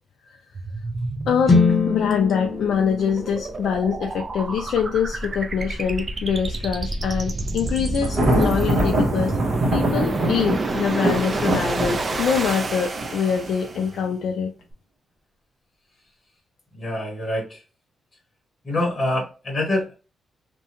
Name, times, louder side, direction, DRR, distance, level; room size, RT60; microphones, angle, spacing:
sound 1, 0.5-13.9, right 3 dB, 30° right, 0.3 m, -29 dB
voice 1, 1.3-9.4 9.7-14.5, left 7 dB, 70° left, 3 dB, 0.3 m, -24 dB
sound 2, 1.5-5.5, left 4 dB, 45° left, 0.7 m, -24 dB
Thunder, 8.0-13.8, right 1 dB, 50° right, 1.0 m, -24 dB
voice 2, 16.7-17.6 18.6-19.9, left 1 dB, 25° left, -1 dB, 1.0 m, -25 dB
2.7 x 2.2 x 2.8 m, 0.32 s
wide cardioid pair, 160°, 0 cm